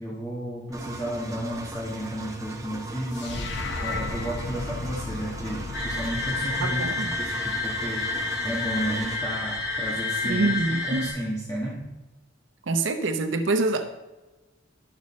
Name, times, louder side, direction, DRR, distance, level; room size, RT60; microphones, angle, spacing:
voice 1, 0.0-8.1 8.4-11.9, equal, 20° left, -6 dB, 1.3 m, -33 dB
Engine, 0.7-9.2, right 2 dB, 15° right, 0.9 m, -39 dB
sound 1, 3.1-7.5, left 3 dB, 65° left, 0.9 m, -35 dB
sound 2, 5.7-11.1, left 2 dB, 80° left, 3.1 m, -29 dB
voice 2, 6.6-7.1 10.2-11.1 12.6-13.9, right 3 dB, 65° right, 6 dB, 0.7 m, -25 dB
11.5 x 6.3 x 4.2 m, 1.1 s
head